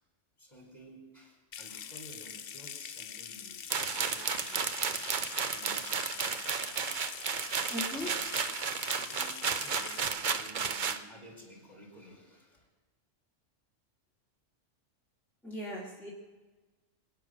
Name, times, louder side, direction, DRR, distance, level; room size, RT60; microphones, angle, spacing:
voice 1, 0.4-6.9 7.9-12.7, equal, 25° left, 0 dB, 4.1 m, -54 dB
Water tap faucet / Sink (filling or washing) / Trickle dribble, 1.5-10.1, left 8 dB, 55° left, 0.8 m, -44 dB
sound 1, 3.7-11.0, right 6 dB, 45° right, 0.8 m, -33 dB
voice 2, 7.7-8.1 15.4-16.1, left 1 dB, ahead, -5 dB, 2.1 m, -38 dB
24.5 x 9.3 x 6.2 m, 1.3 s
omnidirectional pair, 1.3 m